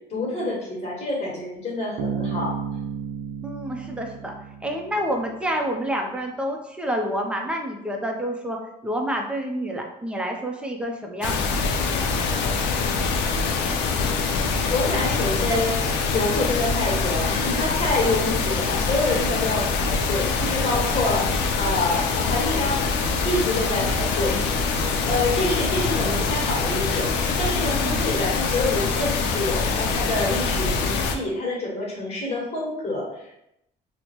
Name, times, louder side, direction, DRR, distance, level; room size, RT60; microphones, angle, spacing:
voice 1, 0.1-2.5 14.7-15.8 16.1-22.9 23.2-24.8 25.0-33.3, left 2 dB, 40° left, -4 dB, 1.5 m, -27 dB
Bass guitar, 2.0-5.5, right 7 dB, 75° right, 0.5 m, -33 dB
voice 2, 3.4-4.3 4.6-12.1 27.7-28.1, equal, 5° right, 1 dB, 0.6 m, -29 dB
sound 1, 11.2-31.2, left 4 dB, 90° left, 0.5 m, -24 dB
4.1 x 2.1 x 2.9 m, 0.81 s
cardioid pair, 110°, 17 cm